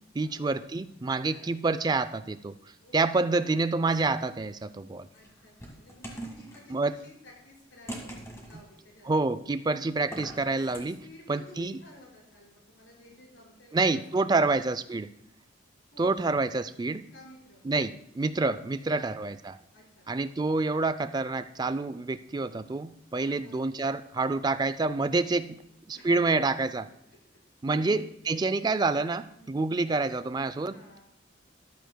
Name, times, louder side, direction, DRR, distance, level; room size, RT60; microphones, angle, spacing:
voice 1, 0.2-2.5 2.9-5.1 6.7-6.9 9.1-11.0 11.3-11.8 13.7-15.1 16.0-17.1 17.7-19.6 20.1-25.6 25.9-26.9 27.6-31.0, right 3 dB, 20° right, 12 dB, 0.4 m, -28 dB
voice 2, 1.3-1.6 2.8-3.2 5.1-9.1 10.6-14.5 15.9-16.1 17.1-17.7 18.7-20.1 23.2-23.7 25.7-26.7 27.1-27.2 27.6-28.4 29.3-29.8 30.6-31.0, left 1 dB, 75° left, -4 dB, 5.0 m, -53 dB
sound 1, 3.9-4.5 5.2-6.6 7.9-8.7 10.0-10.8, right 1 dB, 15° left, 1.7 m, -42 dB
13.5 x 12.0 x 2.2 m, 0.71 s
head